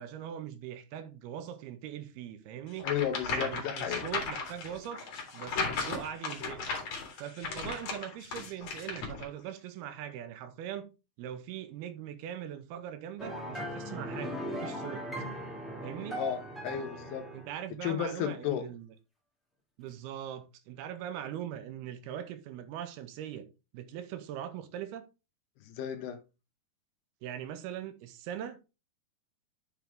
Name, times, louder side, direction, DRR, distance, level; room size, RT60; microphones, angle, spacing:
voice 1, 0.0-2.9 3.3-5.0 5.3-6.7 7.2-10.9 11.2-15.1 15.8-16.2 17.3-18.9 19.8-23.5 23.7-25.1 27.2-28.7, right 10 dB, 85° right, 2.7 m, -41 dB
voice 2, 2.8-4.0 16.1-17.3 17.8-18.7 25.7-26.2, left 9 dB, 85° left, 3.0 m, -33 dB
sound 1, 2.8-9.3, left 4 dB, 50° left, 3.0 m, -36 dB
sound 2, 13.2-17.6, equal, ahead, 0.4 m, -39 dB
9.2 x 6.0 x 3.5 m
omnidirectional pair, 4.6 m